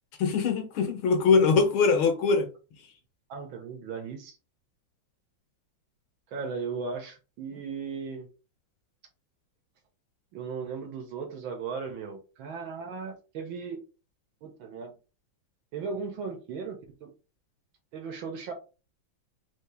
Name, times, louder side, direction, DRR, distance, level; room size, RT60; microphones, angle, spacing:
voice 1, 0.2-2.5, left 5 dB, 85° left, 1.8 m, -22 dB
voice 2, 3.3-4.4 6.3-8.3 10.3-13.8 14.4-15.0 15.7-17.1 17.9-18.5, right 5 dB, 85° right, 1.8 m, -37 dB
4.4 x 2.8 x 3.4 m
omnidirectional pair, 2.1 m